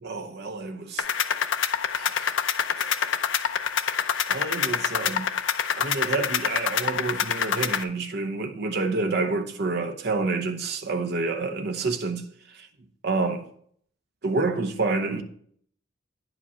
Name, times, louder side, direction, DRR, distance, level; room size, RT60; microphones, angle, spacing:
voice 1, 0.0-1.0 1.9-2.3 2.8-3.0 4.3-5.3 5.8-12.2 12.5-12.7 13.0-13.4 14.2-15.2, right 3 dB, 55° right, 0.7 m, -28 dB
sound 1, 1.0-7.8, left 7 dB, 70° left, 0.6 m, -26 dB
9.6 x 5.1 x 5.6 m
head